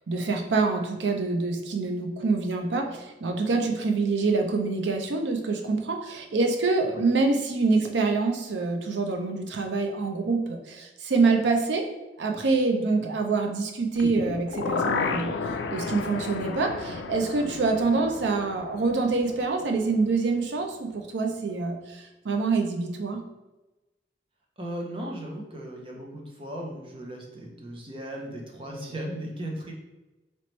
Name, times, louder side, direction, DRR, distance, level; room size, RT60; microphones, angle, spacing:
voice 1, 0.1-11.8 12.2-15.3 15.7-23.2, right 3 dB, 85° right, 4 dB, 0.5 m, -26 dB
sound 1, 14.0-20.0 20.3-20.4, left 4 dB, 85° left, 0.3 m, -32 dB
voice 2, 24.6-29.7, right 1 dB, 30° right, -1 dB, 0.6 m, -37 dB
3.0 x 3.0 x 3.0 m, 1.1 s
head